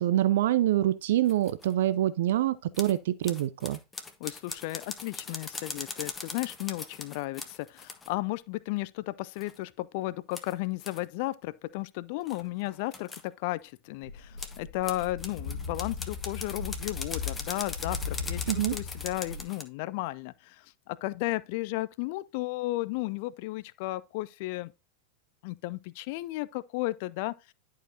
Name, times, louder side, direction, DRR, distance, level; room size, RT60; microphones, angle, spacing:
voice 1, 0.0-3.8 18.5-18.8, right 13 dB, 55° right, 0.3 m, -25 dB
sound 1, 1.3-1.7 2.7-3.0 3.2-8.1 9.3-9.6 10.3-10.5 10.8-11.0 12.3-13.3 14.4-19.6, left 4 dB, 15° left, 1.1 m, -40 dB
voice 2, 4.2-24.7 25.4-27.5, left 19 dB, 45° left, 0.4 m, -34 dB
sound 2, 14.1-19.4, left 5 dB, 65° left, 2.3 m, -37 dB
10.5 x 4.9 x 2.7 m
figure-of-eight pair, 90°, 0 cm